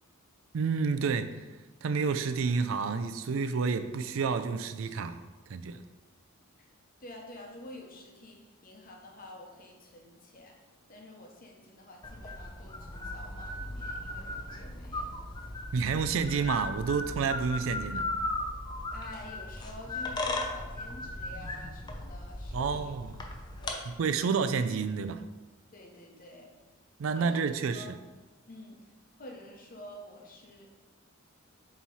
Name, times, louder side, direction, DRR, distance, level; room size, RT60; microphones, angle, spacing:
voice 1, 0.5-1.5 1.8-5.2 5.5-5.8 15.7-18.1 22.5-23.2 23.9-25.2 27.0-27.9, right 5 dB, 70° right, 10 dB, 0.4 m, -29 dB
voice 2, 7.0-10.6 10.9-15.2 18.9-22.9 23.6-23.9 24.2-24.4 25.7-26.5 27.1-27.4 27.7-27.9 28.5-28.8 29.1-30.7, left 1 dB, 40° left, 0 dB, 0.9 m, -48 dB
sound 1, 12.0-23.7, left 2 dB, 20° left, 0.5 m, -37 dB
7.2 x 3.1 x 4.1 m, 1.2 s
head